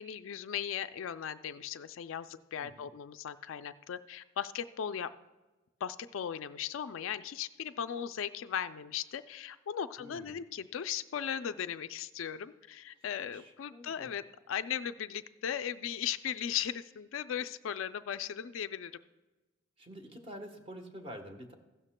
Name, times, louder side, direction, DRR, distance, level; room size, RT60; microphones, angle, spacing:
voice 1, 0.0-5.1 5.8-18.9, left 8 dB, 70° left, 11 dB, 0.4 m, -37 dB
voice 2, 2.6-2.9 10.0-10.4 13.3-14.1 19.8-21.5, equal, 25° right, 4 dB, 1.1 m, -47 dB
15.5 x 12.0 x 2.2 m, 1.2 s
head